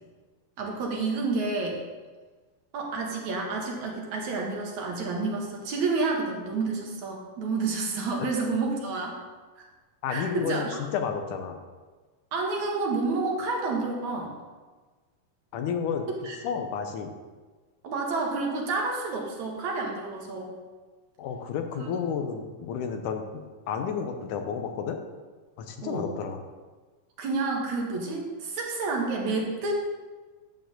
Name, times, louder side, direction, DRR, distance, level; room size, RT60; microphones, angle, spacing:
voice 1, 0.6-1.8 2.7-9.2 9.6-9.7 10.1-10.8 12.3-14.3 16.2-16.4 17.8-20.5 21.8-21.9 25.8-26.1 27.2-29.7, right 3 dB, 60° right, -1 dB, 2.8 m, -29 dB
voice 2, 10.0-11.6 15.5-16.1 16.4-17.1 21.2-25.0 25.6-26.4, left 6 dB, 75° left, 6 dB, 2.3 m, -31 dB
11.5 x 4.7 x 7.7 m, 1.3 s
omnidirectional pair, 3.8 m